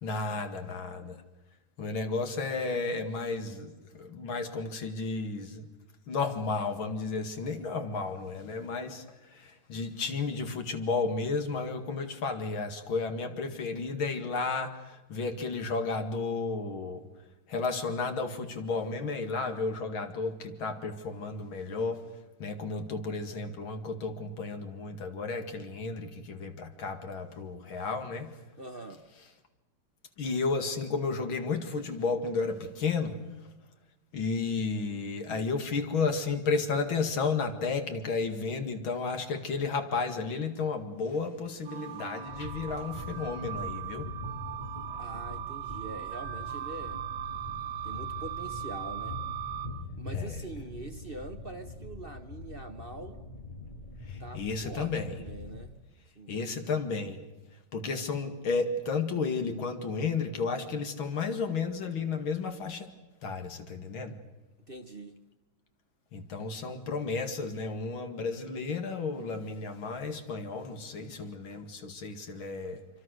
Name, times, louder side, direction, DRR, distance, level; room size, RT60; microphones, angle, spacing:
voice 1, 0.0-1.2 1.8-5.7 6.1-9.0 9.3-17.0 17.5-22.0 22.4-28.3 30.2-33.2 34.1-44.1 50.1-50.4 54.1-55.1 56.3-57.2 57.7-62.9 63.2-64.2 66.1-72.8, left 4 dB, 85° left, 7 dB, 2.9 m, -32 dB
voice 2, 28.6-29.0 45.0-47.0 47.8-49.2 50.0-53.2 54.2-55.7 56.2-56.4 64.7-65.2, right 2 dB, 35° right, 7 dB, 1.0 m, -44 dB
sound 1, 41.6-49.7, right 11 dB, 80° right, 4.0 m, -39 dB
sound 2, 42.3-55.7, left 2 dB, 25° left, 2.1 m, -43 dB
26.5 x 25.0 x 6.6 m, 1.1 s
omnidirectional pair, 2.2 m